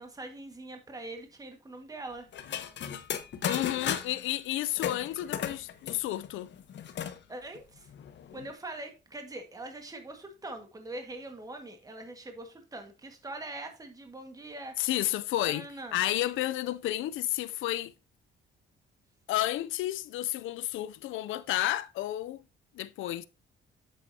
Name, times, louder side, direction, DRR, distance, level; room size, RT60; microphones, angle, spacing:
voice 1, 0.0-2.3 3.4-3.7 7.3-7.9 8.3-14.7 15.4-16.0, right 2 dB, 20° right, 1.7 m, -43 dB
sound 1, 2.3-4.3 4.8-7.2 7.6-7.7 7.9-8.5, left 9 dB, 65° left, 1.0 m, -35 dB
voice 2, 3.5-6.5 14.8-17.9 19.3-22.4 22.7-23.2, left 14 dB, 80° left, 0.5 m, -31 dB
8.0 x 7.6 x 2.8 m
cardioid pair, 90°, 20 cm